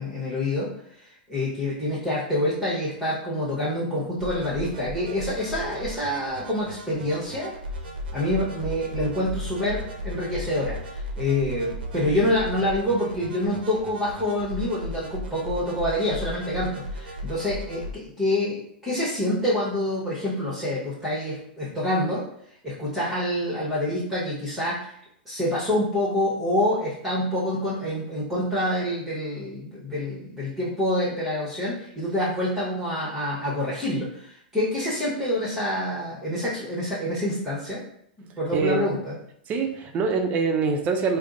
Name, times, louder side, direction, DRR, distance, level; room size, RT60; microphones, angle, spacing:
voice 1, 0.0-7.5 8.1-22.3 22.6-25.0 25.3-37.8 38.4-39.2, left 1 dB, 5° right, -8 dB, 1.0 m, -27 dB
sound 1, 4.2-17.9, equal, 80° right, 0.7 m, -36 dB
voice 2, 38.5-38.9 39.5-41.2, right 4 dB, 30° right, 4 dB, 0.5 m, -24 dB
3.5 x 2.0 x 3.8 m, 0.71 s
hypercardioid pair, 130°, 5 cm